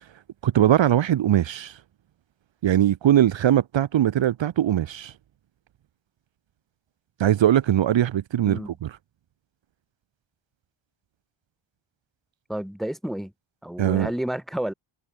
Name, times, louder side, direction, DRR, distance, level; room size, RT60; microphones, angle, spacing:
voice 1, 0.4-1.7 2.6-5.1 7.2-8.9 13.8-14.1, right 11 dB, 65° right, 0.6 m, -21 dB
voice 2, 8.4-8.7 12.5-13.3 13.6-14.7, right 1 dB, ahead, 0.8 m, -30 dB
wide cardioid pair, 130°, 49 cm